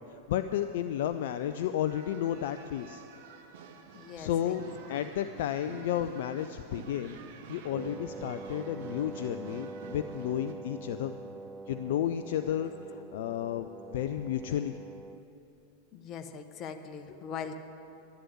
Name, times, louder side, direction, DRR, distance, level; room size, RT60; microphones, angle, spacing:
voice 1, 0.1-3.0 4.2-7.2 7.5-11.2 11.7-14.8, left 10 dB, 55° left, 9 dB, 0.4 m, -32 dB
sound 1, 1.0-10.5, right 5 dB, 50° right, 1.1 m, -49 dB
voice 2, 3.9-4.6 4.9-5.0 15.9-17.5, left 7 dB, 35° left, 7 dB, 1.0 m, -41 dB
Wind instrument woodwind instrument, 7.7-15.3, right 3 dB, 15° right, 0.3 m, -44 dB
11.5 x 11.0 x 8.2 m, 2.8 s
figure-of-eight pair, 90°, 0 cm